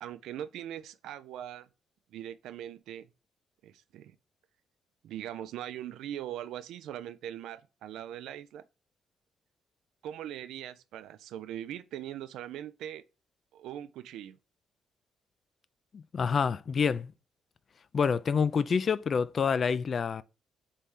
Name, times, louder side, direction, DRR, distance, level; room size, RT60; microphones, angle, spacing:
voice 1, 0.0-1.7 2.1-3.1 3.6-4.2 5.0-8.6 10.0-13.0 13.5-14.4, right 11 dB, 85° right, 0.3 m, -41 dB
voice 2, 15.9-17.1 17.9-20.2, left 6 dB, 45° left, 0.3 m, -27 dB
4.2 x 3.2 x 3.5 m
cardioid pair, 90°, 0 cm